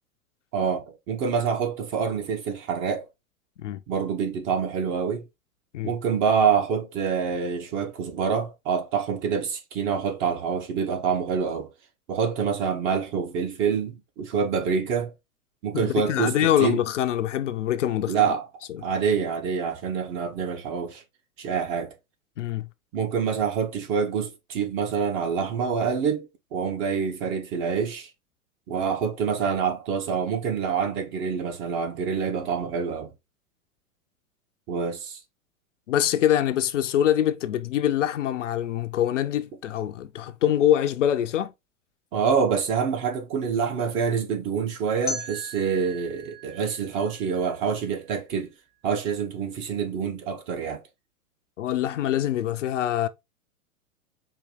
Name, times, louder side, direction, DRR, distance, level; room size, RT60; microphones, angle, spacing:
voice 1, 0.5-3.1 3.9-5.2 5.8-11.7 12.1-15.1 15.6-16.3 16.6-16.8 18.1-18.4 18.8-21.0 21.4-21.9 22.9-28.1 28.7-33.1 34.7-35.2 42.1-48.5 48.8-50.8, right 6 dB, 30° right, 0.9 m, -26 dB
voice 2, 15.7-18.2 18.7-18.8 22.4-22.7 35.9-41.5 51.6-53.1, left 11 dB, 55° left, 0.6 m, -24 dB
sound 1, 45.1-48.0, left 1 dB, ahead, 0.9 m, -38 dB
4.6 x 2.8 x 3.6 m
figure-of-eight pair, 100°, 43 cm